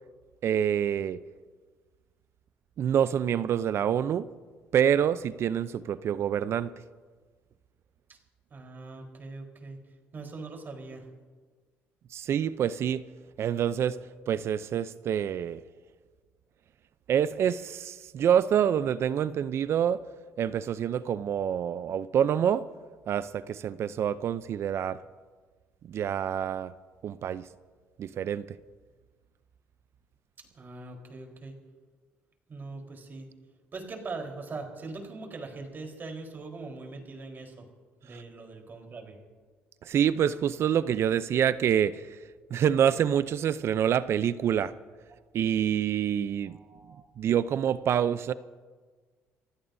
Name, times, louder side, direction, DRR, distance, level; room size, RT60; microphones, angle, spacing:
voice 1, 0.4-1.2 2.8-4.3 4.7-6.7 12.1-13.0 13.4-14.0 14.3-15.6 17.1-20.0 20.4-22.6 23.1-25.0 25.9-26.7 27.0-27.5 28.0-28.5 39.8-42.0 42.5-44.7 45.3-46.6 47.2-48.3, right 9 dB, 60° right, 0.6 m, -26 dB
voice 2, 8.5-9.8 10.1-11.0 30.5-31.6 32.5-33.3 33.7-37.6 38.0-39.2 46.5-47.0, right 3 dB, 40° right, 4.1 m, -41 dB
28.5 x 16.0 x 2.7 m
supercardioid pair, 75°, 5 cm